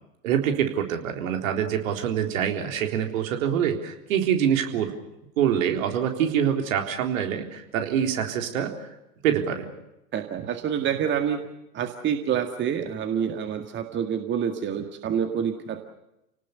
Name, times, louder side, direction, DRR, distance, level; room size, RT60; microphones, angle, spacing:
voice 1, 0.2-4.9 5.4-8.9 9.2-9.7, right 9 dB, 55° right, 4 dB, 3.9 m, -25 dB
voice 2, 10.1-11.4 11.7-15.9, right 8 dB, 25° right, 6 dB, 1.9 m, -27 dB
29.5 x 19.0 x 6.8 m, 0.89 s
figure-of-eight pair, 100°, 48 cm